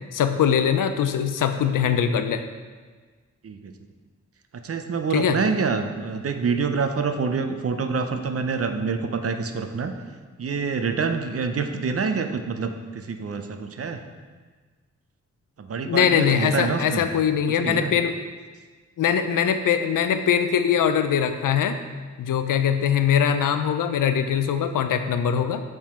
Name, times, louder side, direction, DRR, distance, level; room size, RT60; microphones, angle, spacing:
voice 1, 0.1-2.4 5.1-5.4 15.9-18.2 19.0-21.8 22.2-25.6, left 8 dB, 85° left, 9 dB, 0.5 m, -22 dB
voice 2, 4.6-9.9 10.4-14.0 15.6-17.0 17.6-17.9, right 5 dB, 50° right, 7 dB, 0.6 m, -26 dB
7.1 x 3.8 x 4.3 m, 1.4 s
cardioid pair, 65°, 31 cm